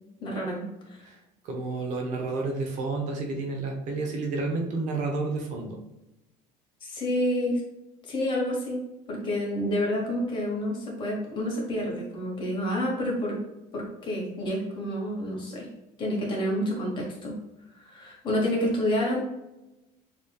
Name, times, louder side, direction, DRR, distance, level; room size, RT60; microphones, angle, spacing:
voice 1, 0.2-1.1 6.8-7.6 8.0-8.8 9.1-13.4 13.7-15.7 16.0-17.4 17.7-19.3, left 1 dB, 30° left, -2 dB, 1.4 m, -29 dB
voice 2, 1.1-5.8, right 3 dB, 50° right, 1 dB, 0.9 m, -30 dB
6.5 x 3.0 x 2.4 m, 0.94 s
cardioid pair, 175°, 15 cm